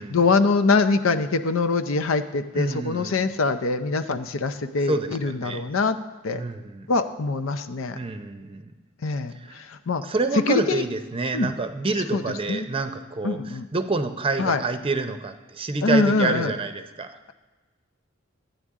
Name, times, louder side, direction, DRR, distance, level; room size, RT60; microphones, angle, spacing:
voice 1, 0.0-6.0 6.2-6.4 6.9-8.0 9.0-10.0 10.5-10.8 11.3-11.5 12.1-12.2 12.5-12.7 13.2-13.7 14.4-14.6 15.8-16.5, left 4 dB, 85° left, 10 dB, 0.6 m, -23 dB
voice 2, 2.5-3.3 4.8-5.7 6.3-6.9 7.9-8.7 9.3-9.6 10.0-17.2, right 3 dB, 30° right, 8 dB, 0.6 m, -28 dB
12.5 x 9.0 x 3.6 m, 1.3 s
head